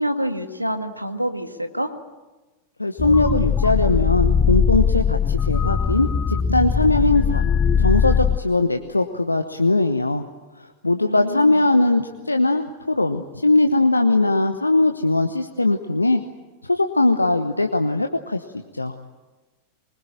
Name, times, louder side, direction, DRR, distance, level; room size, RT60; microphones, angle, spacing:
voice 1, 0.0-1.9 11.1-11.6, equal, 90° right, 8 dB, 1.7 m, -26 dB
voice 2, 2.8-7.4 7.8-10.2 10.6-16.2 16.7-18.4 18.7-18.9, left 2 dB, 85° left, 7 dB, 1.0 m, -20 dB
sound 1, 3.0-8.4, left 7 dB, 20° left, 0.8 m, -20 dB
24.0 x 21.0 x 8.8 m, 1.2 s
figure-of-eight pair, 90°, 0 cm